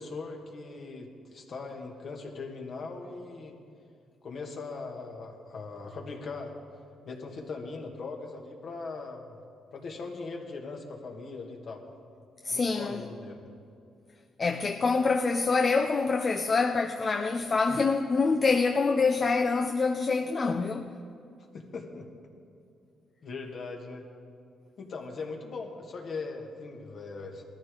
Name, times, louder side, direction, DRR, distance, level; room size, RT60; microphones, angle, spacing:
voice 1, 0.0-3.6 4.2-6.5 7.0-9.4 9.7-11.8 12.5-13.4 21.5-22.1 23.2-24.0 24.8-27.4, left 4 dB, 55° left, 2.1 m, -40 dB
voice 2, 12.4-13.0 14.4-20.9, left 4 dB, 40° left, 0.6 m, -26 dB
19.0 x 13.5 x 3.9 m
cardioid pair, 90°, 0 cm